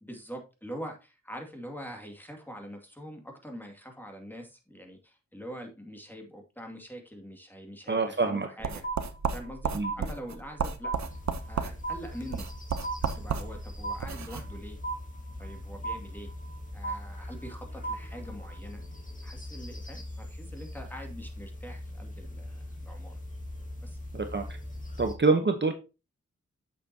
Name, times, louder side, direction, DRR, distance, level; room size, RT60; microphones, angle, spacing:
voice 1, 0.0-8.8 9.3-10.9 11.4-12.5 13.0-14.8 15.4-16.3 16.7-18.8 19.2-23.2 23.8-24.0, equal, 5° left, 3 dB, 2.3 m, -44 dB
voice 2, 7.9-8.5 9.7-9.9 24.1-24.4 25.0-25.7, right 3 dB, 40° right, 6 dB, 1.0 m, -25 dB
sound 1, 8.6-14.5, right 6 dB, 70° right, 0.9 m, -34 dB
sound 2, 8.8-9.5 9.8-10.6 10.8-11.6 11.8-12.6 12.8-13.6 13.8-14.6 14.8-15.6 15.8-16.6 16.8-17.6 17.8-18.6, right 3 dB, 40° left, 1.9 m, -36 dB
sound 3, 10.9-25.1, left 1 dB, 25° left, 2.0 m, -42 dB
8.0 x 6.9 x 2.9 m, 0.29 s
cardioid pair, 65°, 29 cm